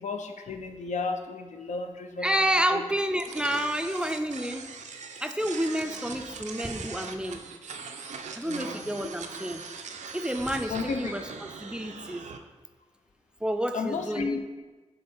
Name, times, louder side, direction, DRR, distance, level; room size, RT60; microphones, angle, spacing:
voice 1, 0.0-2.3 2.7-2.8 8.4-9.1 10.7-11.1 13.7-14.4, left 4 dB, 85° left, 5 dB, 0.5 m, -33 dB
voice 2, 2.2-4.7 5.2-7.5 8.3-9.6 10.1-11.3 11.6-12.3 13.4-14.4, equal, 10° right, 7 dB, 0.4 m, -29 dB
sound 1, 3.2-12.4, right 5 dB, 85° right, 0.5 m, -41 dB
6.6 x 3.7 x 4.3 m, 1.3 s
wide cardioid pair, 100°, 12 cm